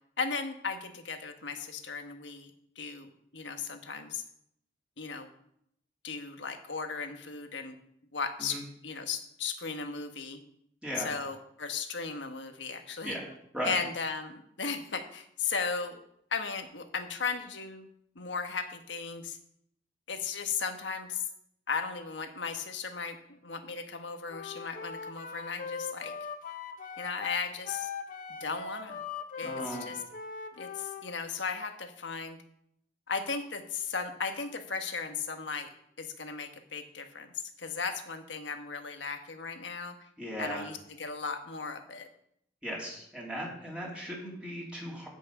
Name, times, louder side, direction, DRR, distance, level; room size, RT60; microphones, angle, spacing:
voice 1, 0.2-4.2 5.0-5.3 6.0-7.7 8.1-10.4 11.0-13.2 13.6-16.0 16.3-17.9 18.1-19.4 20.1-21.2 21.7-26.1 27.0-27.9 28.4-29.0 29.4-30.0 30.6-32.4 33.1-40.0 40.4-42.1, left 5 dB, 75° left, 6 dB, 1.5 m, -36 dB
Wind instrument woodwind instrument, 24.3-31.1, left 5 dB, 45° left, 1.2 m, -40 dB
voice 2, 29.4-29.9 40.2-40.7 42.6-45.1, equal, 5° right, -4 dB, 3.4 m, -37 dB
15.5 x 6.3 x 6.1 m, 0.74 s
head